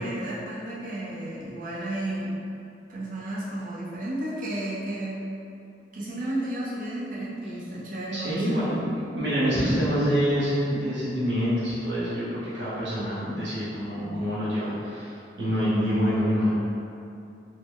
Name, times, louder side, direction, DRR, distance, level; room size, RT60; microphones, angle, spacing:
voice 1, 0.0-2.4 2.9-5.2 5.9-8.8, right 1 dB, 50° right, -7 dB, 0.5 m, -32 dB
voice 2, 8.1-8.8 9.1-16.5, equal, 90° right, -9 dB, 0.8 m, -26 dB
3.0 x 2.0 x 3.7 m, 2.6 s
head